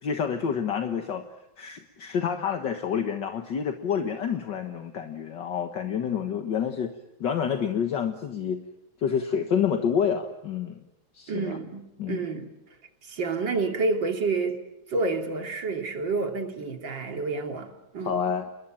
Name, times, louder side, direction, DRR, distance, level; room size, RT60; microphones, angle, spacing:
voice 1, 0.0-1.2 1.6-6.9 7.2-8.6 9.0-10.8 11.1-11.6 12.0-12.2 18.0-18.5, left 7 dB, 65° left, 6 dB, 2.1 m, -28 dB
voice 2, 11.3-12.5 13.0-14.6 14.9-18.2, right 3 dB, 65° right, 5 dB, 3.5 m, -29 dB
29.0 x 21.5 x 9.2 m, 0.90 s
omnidirectional pair, 2.2 m